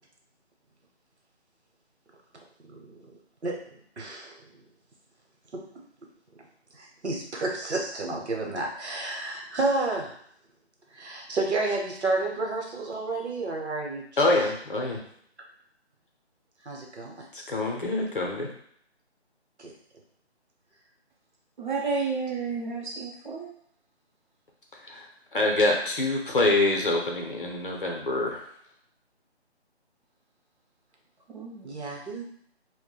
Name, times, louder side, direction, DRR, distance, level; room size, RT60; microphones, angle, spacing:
voice 1, 4.0-4.4 5.5-5.6 6.7-10.1 10.9-14.3 16.6-17.3 19.6-19.7 31.6-32.2, right 2 dB, 80° right, 0 dB, 0.8 m, -30 dB
voice 2, 14.2-15.0 17.3-18.5 24.9-25.1 25.3-28.4, left 2 dB, 50° left, 1 dB, 0.6 m, -25 dB
voice 3, 21.6-23.5 31.3-31.8, right 4 dB, 45° right, -3 dB, 0.7 m, -31 dB
3.1 x 2.1 x 2.2 m, 0.65 s
figure-of-eight pair, 170°, 34 cm